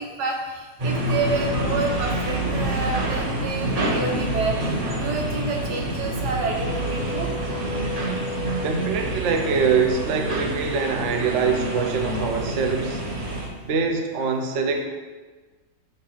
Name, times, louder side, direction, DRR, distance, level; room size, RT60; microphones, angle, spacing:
voice 1, 0.0-7.3, right 3 dB, 80° right, 1 dB, 1.4 m, -29 dB
sound 1, 0.8-13.5, right 1 dB, 30° right, 0.8 m, -27 dB
sound 2, 6.6-11.8, left 4 dB, 65° left, 0.9 m, -37 dB
voice 2, 8.6-13.0 13.6-14.8, right 5 dB, 60° right, 4 dB, 0.8 m, -24 dB
6.6 x 2.7 x 5.6 m, 1.3 s
omnidirectional pair, 1.7 m